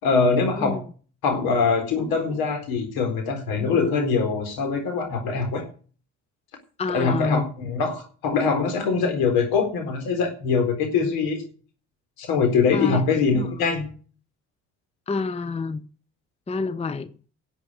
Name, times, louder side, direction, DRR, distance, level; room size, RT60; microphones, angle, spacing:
voice 1, 0.0-0.8 1.2-5.6 6.9-11.5 12.2-13.8, left 5 dB, 75° left, 4.2 m, -23 dB
voice 2, 6.8-7.5 12.7-13.5 15.1-15.8 16.5-17.1, left 4 dB, 15° left, 0.8 m, -28 dB
11.5 x 8.1 x 9.2 m
supercardioid pair, 65°, 36 cm